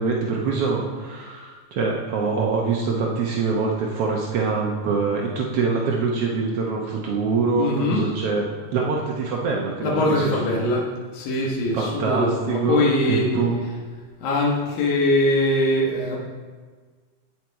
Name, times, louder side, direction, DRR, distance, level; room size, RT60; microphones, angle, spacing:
voice 1, 0.0-8.4 8.7-10.7 11.7-12.8 13.1-13.6, right 4 dB, 80° right, -1 dB, 1.3 m, -24 dB
voice 2, 7.6-8.0 9.8-10.9 11.1-13.3 14.2-16.2, left 1 dB, 80° left, -3 dB, 3.1 m, -22 dB
9.1 x 9.0 x 4.7 m, 1.5 s
omnidirectional pair, 4.1 m